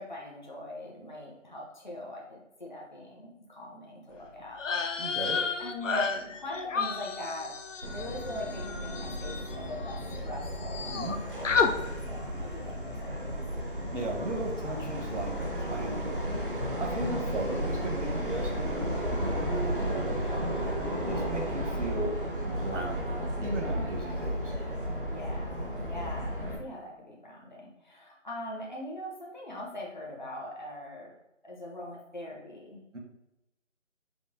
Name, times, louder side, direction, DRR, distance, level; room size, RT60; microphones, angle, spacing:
voice 1, 0.0-4.6 5.6-7.5 7.8-11.8 12.1-13.3 24.9-31.1 31.4-32.8, left 1 dB, 40° left, -3 dB, 0.8 m, -42 dB
sound 1, 4.6-10.2 10.4-11.2 11.4-11.7, left 5 dB, 80° left, 0.6 m, -31 dB
voice 2, 5.0-5.4 10.9-11.2 13.9-16.3 16.8-22.1 22.4-24.5 32.9-33.0, right 2 dB, 75° right, 1 dB, 1.2 m, -37 dB
Subway metro underground, 7.8-26.6, equal, 45° right, 0.7 m, -33 dB
5.2 x 2.1 x 3.5 m, 0.91 s
figure-of-eight pair, 175°, 37 cm